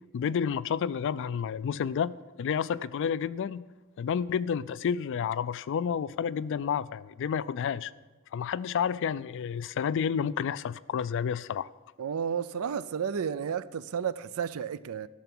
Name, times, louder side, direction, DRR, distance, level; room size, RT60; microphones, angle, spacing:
voice 1, 0.1-2.1 2.4-3.6 4.0-7.9 8.3-11.7, left 7 dB, 60° left, 0.3 m, -30 dB
voice 2, 12.0-15.1, right 7 dB, 80° right, 0.4 m, -32 dB
12.5 x 6.8 x 6.0 m
head